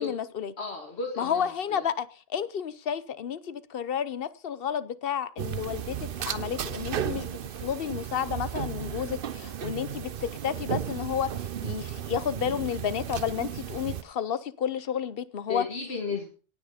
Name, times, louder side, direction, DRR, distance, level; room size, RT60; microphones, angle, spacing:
voice 1, 0.0-0.5 1.2-11.3 11.6-15.7, left 8 dB, 65° left, 1.0 m, -31 dB
voice 2, 0.6-1.8 15.5-16.3, left 4 dB, 90° left, 2.1 m, -34 dB
sound 1, 5.4-14.0, right 9 dB, 65° right, 0.9 m, -34 dB
18.0 x 6.4 x 5.0 m
omnidirectional pair, 1.1 m